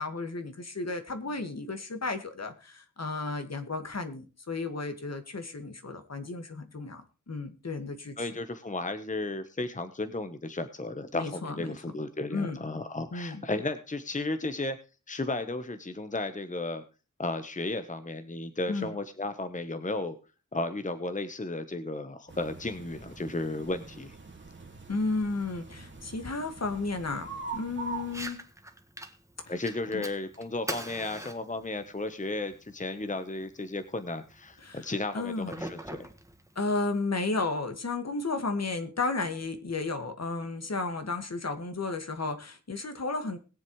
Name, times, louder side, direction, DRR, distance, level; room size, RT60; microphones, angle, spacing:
voice 1, 0.0-8.3 11.1-11.7 12.3-12.6 13.1-13.4 18.7-18.9 24.9-28.4 29.5-29.6 29.9-30.0 34.6-34.8 35.1-35.6 36.6-43.4, left 3 dB, 55° left, 8 dB, 1.9 m, -33 dB
voice 2, 8.2-14.8 15.1-16.8 17.2-20.1 20.5-24.2 29.4-36.1, left 2 dB, 25° left, 10 dB, 1.0 m, -34 dB
sound 1, 22.3-28.3, right 4 dB, 40° right, 2.3 m, -43 dB
Fire, 28.0-37.0, right 1 dB, 10° right, 1.7 m, -44 dB
21.0 x 7.4 x 3.1 m, 0.33 s
wide cardioid pair, 95°, 31 cm